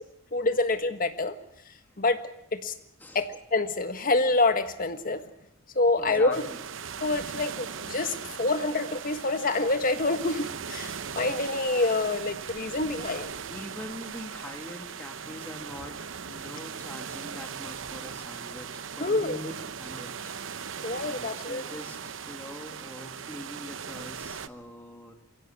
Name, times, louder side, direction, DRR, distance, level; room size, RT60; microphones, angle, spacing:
voice 1, 0.3-1.3 2.0-2.2 2.5-2.7 3.1-5.2 5.7-6.4 7.0-13.4 19.0-19.4 20.8-21.6, left 2 dB, 45° left, 9 dB, 1.5 m, -27 dB
voice 2, 6.0-6.6 13.5-18.7 19.0-19.5 19.8-25.1, equal, 10° left, 4 dB, 2.2 m, -43 dB
sound 1, 6.3-24.5, right 7 dB, 70° right, 0.8 m, -39 dB
22.5 x 16.5 x 8.3 m, 0.79 s
head